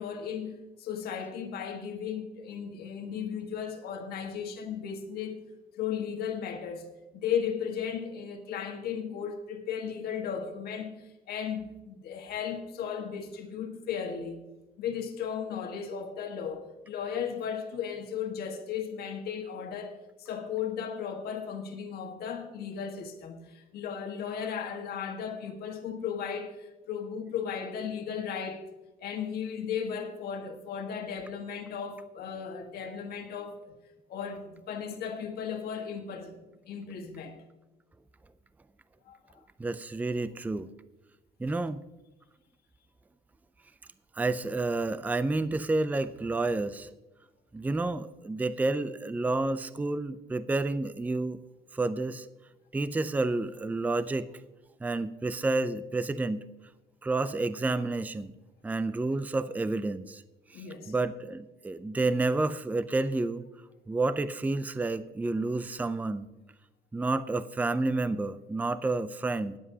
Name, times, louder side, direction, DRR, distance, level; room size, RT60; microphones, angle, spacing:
voice 1, 0.0-5.4 5.8-14.4 14.8-28.6 29.0-33.7 34.1-36.4 36.7-37.4 39.1-39.2 60.5-60.9, left 7 dB, 65° left, 1.5 m, -35 dB
voice 2, 39.6-40.7 41.4-41.8 44.2-46.9 47.5-51.4 51.7-52.3 52.7-54.3 54.8-56.4 57.0-58.3 58.6-60.2 60.5-63.4 63.9-66.3 66.9-69.6, right 2 dB, 10° right, 0.4 m, -30 dB
20.5 x 7.8 x 2.8 m
cardioid pair, 110°, 17 cm